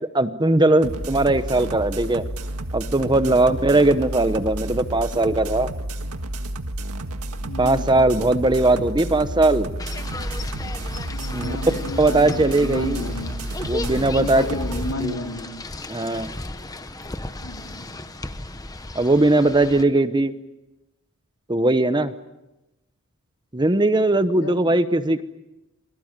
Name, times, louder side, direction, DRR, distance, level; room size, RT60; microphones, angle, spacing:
voice 1, 0.1-2.2 2.7-5.7 7.6-9.7 11.3-11.5 12.0-13.0 13.7-14.4 15.0-15.2 15.9-16.3 18.9-20.3 21.5-22.1 23.5-25.2, right 2 dB, 20° right, 11 dB, 1.0 m, -19 dB
sound 1, 0.8-14.9, right 1 dB, 90° right, 1.8 m, -31 dB
voice 2, 7.4-8.2 11.0-13.4 14.1-15.5 17.4-17.9 24.3-24.7, left 1 dB, 90° left, 2 dB, 4.4 m, -32 dB
sound 2, 9.8-19.8, left 2 dB, 15° left, 1.1 m, -34 dB
28.5 x 24.0 x 7.5 m, 0.99 s
head